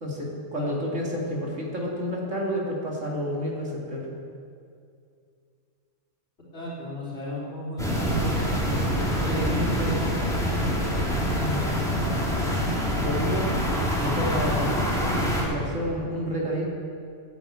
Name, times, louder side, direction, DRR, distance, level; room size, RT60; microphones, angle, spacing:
voice 1, 0.0-4.1 11.3-11.6 13.0-13.5 14.0-14.7 15.5-16.7, equal, 75° right, -3 dB, 2.7 m, -29 dB
voice 2, 6.5-8.8 9.2-10.0, equal, 55° left, -7 dB, 3.5 m, -33 dB
sound 1, 7.8-15.4, equal, ahead, 2.3 m, -25 dB
10.0 x 8.7 x 8.4 m, 2.4 s
omnidirectional pair, 1.3 m